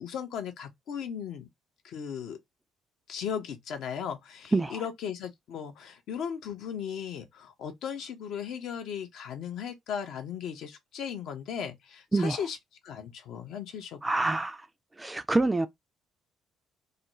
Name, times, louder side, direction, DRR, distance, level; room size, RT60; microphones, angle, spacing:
voice 1, 0.0-1.5 1.8-2.4 3.1-12.6 12.8-14.0, left 8 dB, 55° left, 0.5 m, -37 dB
voice 2, 4.5-4.8 12.1-12.4 14.0-14.7 15.0-15.7, right 2 dB, 15° right, 0.3 m, -26 dB
2.4 x 2.1 x 2.9 m
figure-of-eight pair, 45°, 0 cm